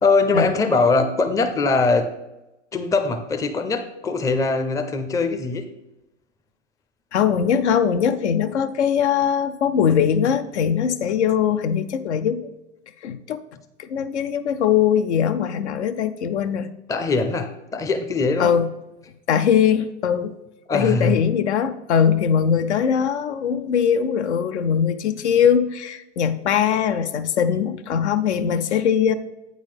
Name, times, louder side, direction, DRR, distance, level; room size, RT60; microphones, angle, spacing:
voice 1, 0.0-2.1 2.7-5.6 16.9-18.5 20.7-21.2, left 3 dB, 10° left, 6 dB, 0.5 m, -21 dB
voice 2, 7.1-12.4 13.0-13.4 13.8-16.7 18.4-18.7 19.3-20.3 20.7-29.1, left 8 dB, 70° left, 10 dB, 0.6 m, -21 dB
8.4 x 3.9 x 5.1 m, 0.95 s
figure-of-eight pair, 90°, 36 cm